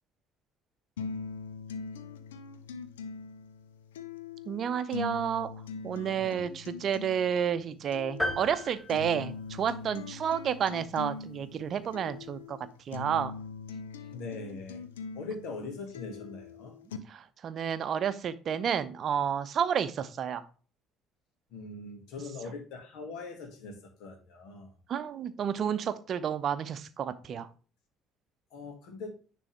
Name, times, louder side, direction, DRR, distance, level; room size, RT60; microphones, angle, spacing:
sound 1, 1.0-17.0, left 5 dB, 80° left, 0.5 m, -42 dB
voice 1, 4.5-5.5 5.8-12.6 12.9-13.3 17.1-20.4 24.9-27.5, right 8 dB, 50° right, 12 dB, 0.6 m, -31 dB
sound 2, 8.2-10.0, left 1 dB, 5° left, 3.6 m, -35 dB
voice 2, 14.1-14.8 15.1-16.7 21.5-24.7 28.5-29.2, left 3 dB, 60° left, 4 dB, 1.8 m, -41 dB
9.7 x 3.4 x 3.3 m, 0.37 s
figure-of-eight pair, 55°, 0 cm